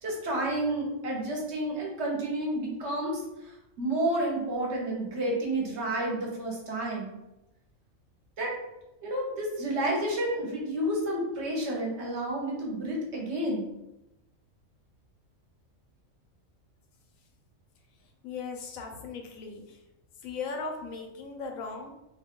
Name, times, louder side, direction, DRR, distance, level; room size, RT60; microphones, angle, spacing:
voice 1, 0.0-7.2 8.4-8.5 9.0-13.7, right 1 dB, 60° right, -1 dB, 1.0 m, -30 dB
voice 2, 18.2-19.8 20.2-21.9, left 4 dB, 90° left, 3 dB, 1.0 m, -38 dB
2.6 x 2.3 x 3.5 m, 0.92 s
omnidirectional pair, 1.4 m